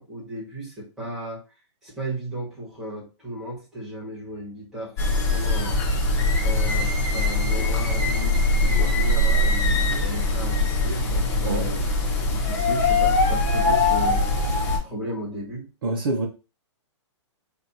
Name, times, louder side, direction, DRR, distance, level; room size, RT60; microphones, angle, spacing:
voice 1, 0.0-1.4 1.8-5.8 6.4-11.8 12.3-14.3 14.7-15.7, right 1 dB, 5° right, -7 dB, 1.7 m, -35 dB
sound 1, 5.0-14.8, left 2 dB, 25° left, 1.1 m, -22 dB
voice 2, 15.8-16.3, right 2 dB, 50° right, 1 dB, 1.1 m, -25 dB
5.7 x 2.7 x 2.8 m, 0.31 s
hypercardioid pair, 170°, 15 cm